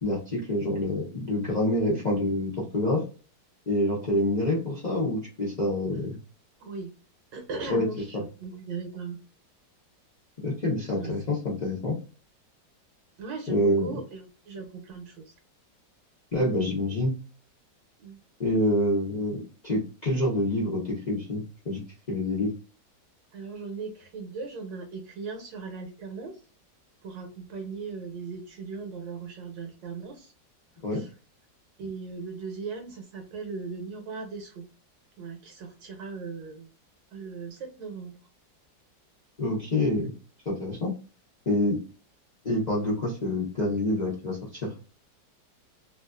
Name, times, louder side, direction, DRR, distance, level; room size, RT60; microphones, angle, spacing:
voice 1, 0.0-3.1 3.7-6.2 7.7-7.9 8.1-8.2 10.4-12.0 13.5-13.9 16.3-17.1 18.4-21.8 22.1-22.5 30.8-31.0 39.4-40.1 40.5-40.9 41.5-41.8 42.4-44.7, left 1 dB, 60° left, -5 dB, 0.4 m, -27 dB
voice 2, 6.6-6.9 7.3-9.2 10.9-11.1 13.2-15.2 18.0-18.2 23.3-26.4 27.0-30.3 30.9-31.1 31.8-34.6 35.2-36.7 37.1-38.2, right 4 dB, 75° right, 4 dB, 1.4 m, -38 dB
3.0 x 2.4 x 2.3 m, 0.35 s
omnidirectional pair, 2.0 m